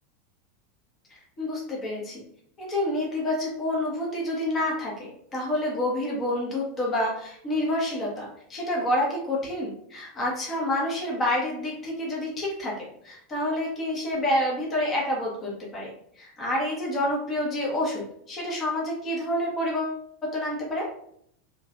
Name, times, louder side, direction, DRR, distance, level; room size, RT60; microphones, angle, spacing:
voice 1, 1.1-2.2 2.6-15.9 16.2-20.9, left 1 dB, 30° left, -3 dB, 1.2 m, -28 dB
3.3 x 3.1 x 2.5 m, 0.67 s
figure-of-eight pair, 85°, 0 cm